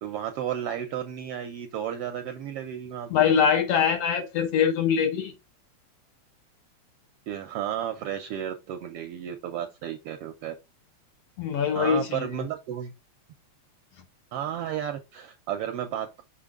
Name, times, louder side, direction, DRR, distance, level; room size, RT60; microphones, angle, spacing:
voice 1, 0.0-3.3 7.3-10.5 11.7-12.9 14.3-16.2, right 10 dB, 75° right, 1.4 m, -33 dB
voice 2, 3.1-5.3 11.4-12.3, left 7 dB, 70° left, 1.7 m, -23 dB
6.0 x 4.4 x 3.6 m
omnidirectional pair, 3.3 m